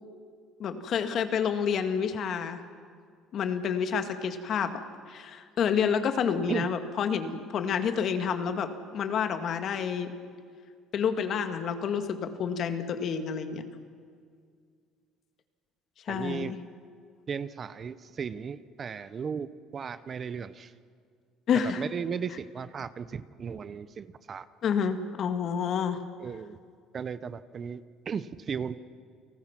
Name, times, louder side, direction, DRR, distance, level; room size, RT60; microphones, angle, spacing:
voice 1, 0.6-2.6 3.3-4.8 5.1-10.1 10.9-13.6 16.1-16.6 21.5-21.8 24.6-26.0, left 7 dB, 55° left, 8 dB, 1.9 m, -29 dB
voice 2, 16.1-16.5 17.3-20.7 21.8-24.5 26.2-26.6 26.9-28.8, right 6 dB, 40° right, 15 dB, 0.8 m, -36 dB
30.0 x 19.0 x 6.0 m, 2.1 s
supercardioid pair, 95°, 0 cm